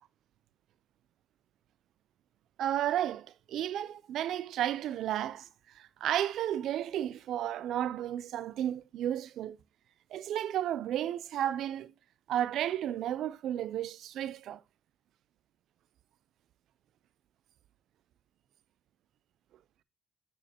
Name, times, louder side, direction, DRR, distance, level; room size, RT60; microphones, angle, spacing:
voice 1, 2.6-5.5 5.7-9.6 10.1-11.9 12.3-14.6, right 11 dB, 80° right, 0.5 m, -33 dB
8.7 x 5.0 x 2.8 m
cardioid pair, 90°, 0 cm